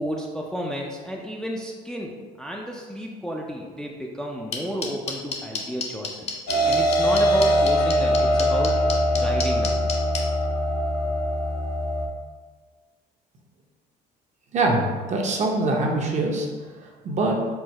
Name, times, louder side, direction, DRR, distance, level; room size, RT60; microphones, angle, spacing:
voice 1, 0.0-2.1 2.4-6.4 6.7-8.7 9.1-9.8, equal, 5° left, -1 dB, 0.4 m, -32 dB
sound 1, 4.5-10.2, left 5 dB, 40° left, 0.7 m, -29 dB
sound 2, 6.5-12.1, equal, 85° left, 0.7 m, -22 dB
voice 2, 14.5-16.5 17.0-17.4, right 2 dB, 45° right, 0 dB, 0.8 m, -23 dB
4.5 x 2.0 x 4.3 m, 1.4 s
cardioid pair, 110°, 17 cm